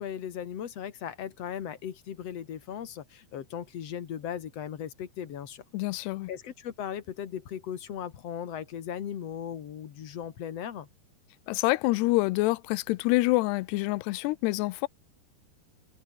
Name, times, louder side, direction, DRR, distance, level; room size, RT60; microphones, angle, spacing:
voice 1, 0.0-5.6 6.3-10.9, left 9 dB, 50° left, 2.1 m, -37 dB
voice 2, 5.7-6.3 11.5-14.9, left 20 dB, 80° left, 2.7 m, -26 dB
omnidirectional pair, 4.9 m